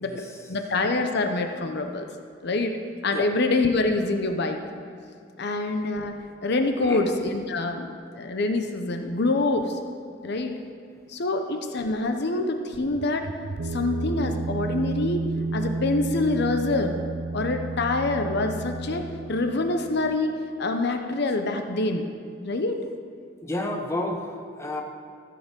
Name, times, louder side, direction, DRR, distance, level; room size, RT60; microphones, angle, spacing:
voice 1, 0.0-2.1 2.4-2.8 3.0-4.6 5.4-6.1 6.4-9.8 10.2-10.6 11.1-13.3 13.5-15.2 15.5-16.9 17.3-22.1 22.4-22.8, left 2 dB, 55° left, 5 dB, 0.7 m, -26 dB
sound 1, 12.7-20.1, right 3 dB, 90° right, 0.6 m, -32 dB
voice 2, 23.4-24.8, left 1 dB, 15° left, 2 dB, 0.9 m, -31 dB
15.0 x 7.8 x 5.3 m, 2.4 s
head